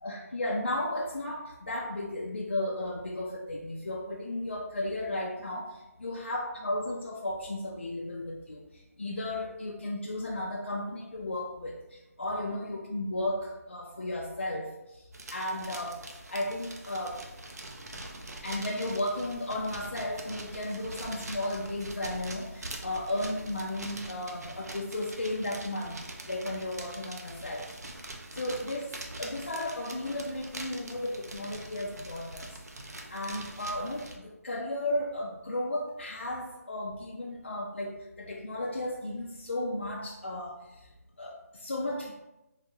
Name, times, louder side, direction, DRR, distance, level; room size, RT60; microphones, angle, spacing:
voice 1, 0.0-15.0 15.3-16.0 16.3-17.2 18.4-26.0 26.3-27.7 28.3-40.9 41.2-42.1, left 1 dB, 45° left, -2 dB, 0.4 m, -34 dB
sound 1, 15.1-34.2, right 2 dB, 75° right, 0.6 m, -44 dB
3.4 x 2.3 x 3.0 m, 0.95 s
figure-of-eight pair, 175°, 9 cm